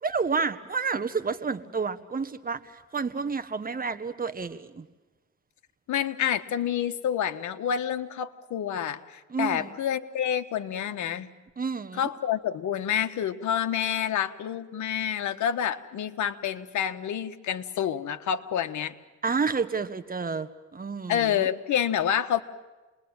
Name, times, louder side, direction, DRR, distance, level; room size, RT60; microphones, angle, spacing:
voice 1, 0.0-4.9 9.3-9.8 11.6-12.1 19.2-21.5, right 5 dB, 30° right, 11 dB, 1.6 m, -30 dB
voice 2, 5.9-11.3 12.0-18.9 21.1-22.4, left 9 dB, 75° left, 9 dB, 1.5 m, -28 dB
28.0 x 21.5 x 9.0 m, 1.2 s
cardioid pair, 90°, 30 cm